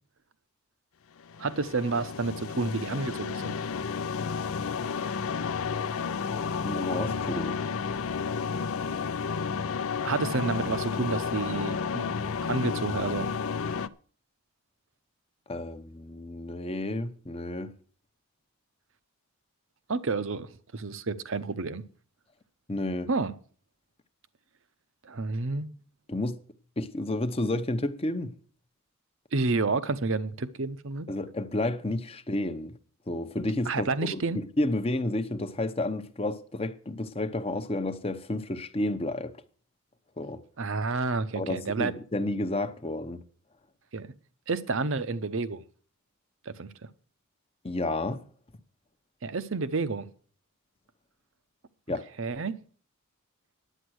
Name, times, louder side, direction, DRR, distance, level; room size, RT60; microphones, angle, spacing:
sound 1, 1.2-13.9, left 5 dB, 70° left, 0.5 m, -31 dB
voice 1, 1.4-3.6 10.0-12.1 12.5-13.3 19.9-21.8 23.1-23.3 25.0-25.7 29.3-31.1 33.7-34.4 40.6-41.9 43.9-44.1 44.5-45.6 46.5-46.9 49.2-50.0 52.2-52.6, right 3 dB, 60° right, 0.7 m, -30 dB
voice 2, 6.3-7.6 15.5-17.7 22.7-23.1 26.1-26.4 26.8-28.3 31.1-32.8 33.1-39.3 40.2-40.4 41.4-43.2 47.6-48.2 51.9-52.0, left 2 dB, 25° left, 0.7 m, -31 dB
10.0 x 8.8 x 6.3 m
head